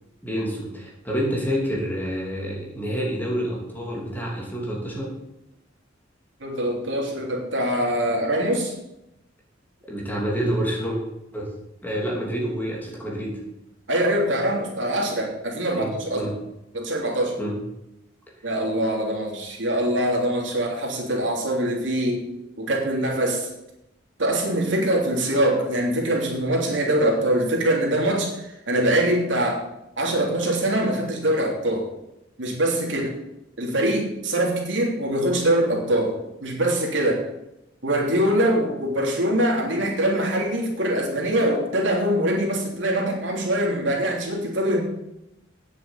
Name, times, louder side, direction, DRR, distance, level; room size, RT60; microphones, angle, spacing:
voice 1, 0.2-5.1 9.9-11.0 11.3-11.5 11.8-13.4 15.7-16.3 17.4-17.6, equal, 10° left, -3 dB, 3.1 m, -28 dB
voice 2, 6.4-8.7 13.9-16.2 16.7-17.4 18.4-22.2 22.6-23.5 24.2-29.6 30.0-31.9 32.4-33.1 33.6-37.3 37.8-44.8, right 1 dB, 75° right, -2 dB, 3.3 m, -23 dB
9.3 x 7.6 x 8.2 m, 0.88 s
head